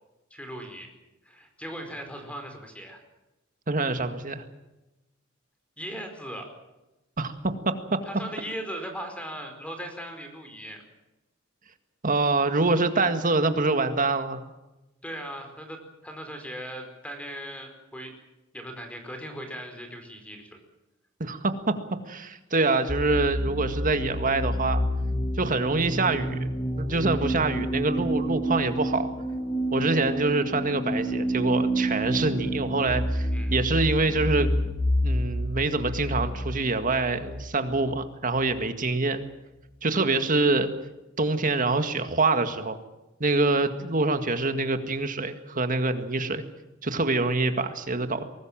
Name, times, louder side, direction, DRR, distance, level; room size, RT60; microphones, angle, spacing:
voice 1, 0.3-0.9 1.2-3.0 5.8-6.5 8.0-10.8 15.0-18.1 18.5-20.6 33.3-33.6, equal, 5° left, 5 dB, 4.8 m, -38 dB
voice 2, 3.7-4.4 7.2-7.7 12.0-14.5 21.2-21.5 22.1-24.8 25.4-26.5 26.8-29.1 29.7-34.5 35.0-39.2 39.8-40.7 41.2-42.8 43.2-46.4 46.8-48.2, right 3 dB, 45° right, 8 dB, 1.9 m, -25 dB
sound 1, 22.9-38.4, equal, 25° left, 3.5 m, -29 dB
23.5 x 19.0 x 7.6 m, 0.99 s
head